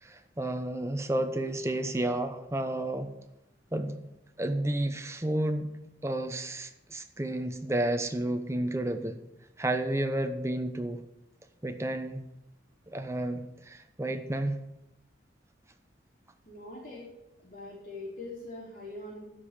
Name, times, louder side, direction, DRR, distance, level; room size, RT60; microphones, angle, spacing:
voice 1, 0.0-3.1 3.7-4.1 4.4-5.8 6.0-9.2 9.6-11.0 11.6-12.2 12.9-14.6, right 1 dB, 15° right, 0.8 m, -31 dB
voice 2, 16.4-17.1 17.4-19.2, left 2 dB, 45° left, 3.0 m, -42 dB
12.5 x 5.2 x 7.2 m
head